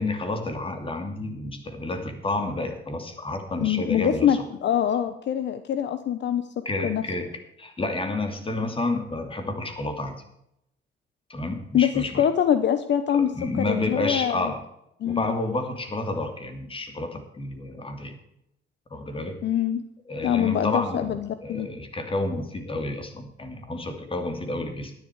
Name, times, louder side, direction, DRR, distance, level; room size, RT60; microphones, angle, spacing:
voice 1, 0.0-4.4 6.6-10.2 11.3-12.2 13.1-14.6 15.0-18.2 18.9-19.4 20.1-24.9, left 2 dB, 25° left, 6 dB, 2.7 m, -30 dB
voice 2, 3.6-6.4 6.8-7.0 11.7-13.3 13.6-14.5 15.0-15.4 19.4-19.8 20.2-21.7, left 9 dB, 65° left, 11 dB, 0.9 m, -24 dB
12.0 x 11.0 x 4.8 m, 0.79 s
cardioid pair, 90°, 20 cm